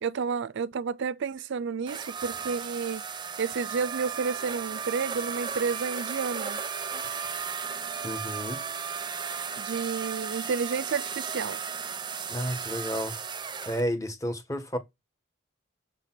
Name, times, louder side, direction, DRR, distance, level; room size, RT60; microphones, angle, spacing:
voice 1, 0.0-3.0 3.4-6.6 9.6-11.6, right 5 dB, 60° right, 0.4 m, -31 dB
sound 1, 1.9-13.8, right 6 dB, 20° right, 0.7 m, -35 dB
voice 2, 8.0-8.6 12.3-13.1 13.7-14.8, equal, 15° left, 1.4 m, -31 dB
6.8 x 6.5 x 6.0 m
head